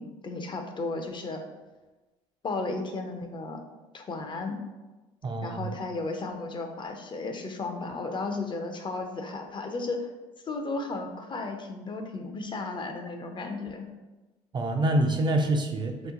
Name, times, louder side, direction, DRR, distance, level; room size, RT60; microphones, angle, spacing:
voice 1, 0.0-1.4 2.4-3.6 3.9-4.6 5.4-10.1 10.5-13.9, left 3 dB, 30° left, 4 dB, 0.5 m, -34 dB
voice 2, 5.2-5.7 14.5-16.1, right 1 dB, 30° right, 3 dB, 0.4 m, -26 dB
2.9 x 2.1 x 3.7 m, 1.1 s
hypercardioid pair, 65°, 16 cm